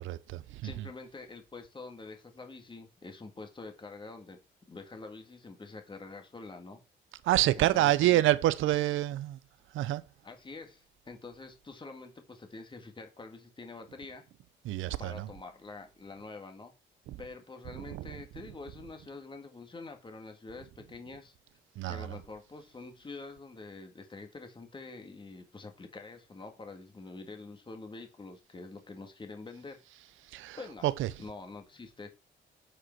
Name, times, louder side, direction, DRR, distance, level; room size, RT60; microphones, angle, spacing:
voice 1, 0.0-0.8 7.2-9.4 9.7-10.0 14.6-15.3 17.1-17.2 17.8-18.1 21.8-22.1 30.3-30.6 30.8-31.1, right 14 dB, 85° right, 0.7 m, -27 dB
voice 2, 0.6-4.4 4.7-6.8 7.6-8.3 10.2-14.3 15.0-16.7 17.2-21.3 21.8-29.8 30.6-30.9 31.2-32.1, left 3 dB, 25° left, 1.8 m, -46 dB
8.7 x 5.0 x 4.5 m
cardioid pair, 90°, 20 cm